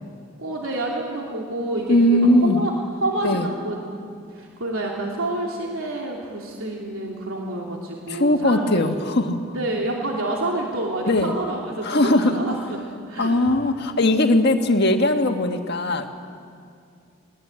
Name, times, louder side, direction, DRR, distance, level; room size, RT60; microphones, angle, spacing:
voice 1, 0.4-2.7 3.0-3.8 4.3-9.0 9.5-13.4, right 1 dB, 80° right, -2 dB, 2.9 m, -28 dB
voice 2, 1.9-2.6 3.2-3.5 8.1-9.5 11.1-11.3 11.8-12.4 13.2-16.1, left 1 dB, 50° left, 5 dB, 1.6 m, -19 dB
22.0 x 19.5 x 8.9 m, 2.4 s
head